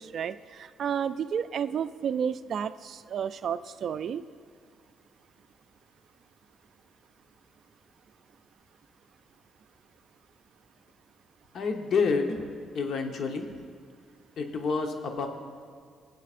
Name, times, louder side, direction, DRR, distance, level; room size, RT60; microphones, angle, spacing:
voice 1, 0.0-4.2, right 8 dB, 60° right, 13 dB, 0.3 m, -31 dB
voice 2, 11.5-12.5 12.7-13.5 14.4-15.3, left 4 dB, 60° left, 4 dB, 1.0 m, -28 dB
21.0 x 8.2 x 2.5 m, 2.1 s
cardioid pair, 90°, 0 cm